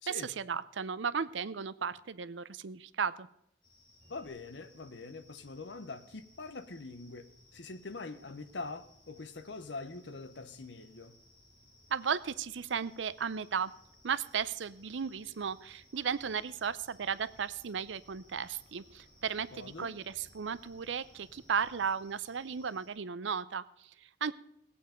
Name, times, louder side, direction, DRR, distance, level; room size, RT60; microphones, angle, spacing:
voice 1, 0.1-3.3 11.9-13.7 14.0-24.3, right 6 dB, 80° right, 16 dB, 0.5 m, -35 dB
sound 1, 3.6-22.9, left 1 dB, 25° left, 2.7 m, -63 dB
sound 2, 4.0-21.9, equal, 40° right, 4.5 m, -66 dB
voice 2, 4.1-11.2 19.5-19.9, left 3 dB, 70° left, 10 dB, 0.9 m, -44 dB
18.5 x 8.5 x 5.1 m, 0.77 s
head